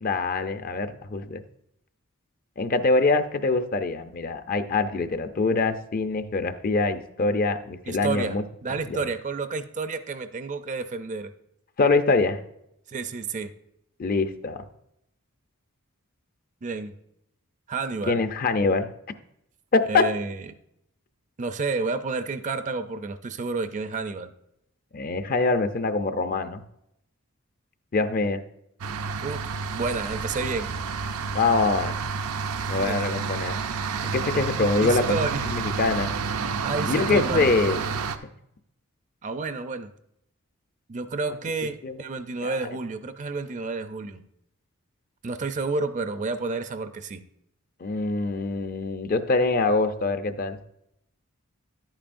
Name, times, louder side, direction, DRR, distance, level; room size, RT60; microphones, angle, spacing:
voice 1, 0.0-1.4 2.6-8.4 8.9-9.1 11.8-12.4 14.0-14.6 18.1-18.9 19.7-20.1 24.9-26.6 27.9-28.4 31.3-32.0 32.7-33.6 34.1-35.2 35.5-36.1 36.9-37.8 41.8-41.9 42.4-42.5 47.8-50.6, left 3 dB, 40° left, 10 dB, 0.5 m, -24 dB
voice 2, 7.9-8.4 8.6-11.3 12.9-13.5 16.6-17.0 17.7-18.2 19.9-20.4 21.4-24.3 29.2-29.4 29.7-30.7 32.8-33.0 34.8-35.4 36.6-37.5 39.2-39.9 40.9-44.3 45.2-47.2, right 4 dB, 35° right, 10 dB, 0.4 m, -30 dB
sound 1, 28.8-38.2, right 5 dB, 80° right, 0.6 m, -29 dB
10.5 x 8.8 x 2.6 m, 0.78 s
head